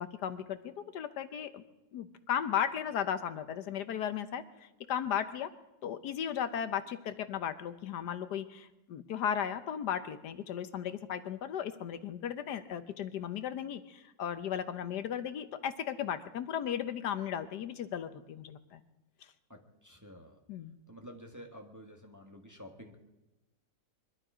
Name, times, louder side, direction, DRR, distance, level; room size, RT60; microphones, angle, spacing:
voice 1, 0.0-1.6 1.9-5.5 5.8-18.8 20.5-20.8, left 9 dB, 75° left, 11 dB, 1.3 m, -36 dB
voice 2, 19.5-20.4 20.9-23.0, equal, 10° right, 2 dB, 1.5 m, -50 dB
22.5 x 12.5 x 5.0 m, 1.0 s
omnidirectional pair, 1.9 m